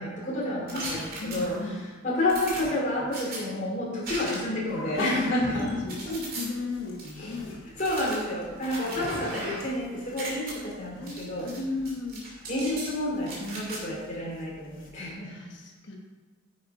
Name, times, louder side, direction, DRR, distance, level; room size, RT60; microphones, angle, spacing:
voice 1, 0.0-1.5 2.0-5.7 7.2-7.3 7.8-11.5 12.5-15.3, left 1 dB, 40° left, -5 dB, 3.1 m, -30 dB
sound 1, 0.7-1.8 2.3-3.4 4.0-4.6 5.0-6.5 7.0-7.1 7.8-9.8 10.0-10.5 11.1-11.6 11.9-12.9 13.3-13.8, right 2 dB, 50° right, 2.7 m, -38 dB
voice 2, 1.2-1.8 5.1-5.2 5.6-7.7 8.8-9.3 11.0-12.2 15.2-16.0, left 3 dB, 60° left, 0 dB, 1.3 m, -35 dB
sound 2, 4.7-14.9, left 1 dB, 80° left, 2.2 m, -43 dB
9.5 x 6.0 x 5.0 m, 1.3 s
head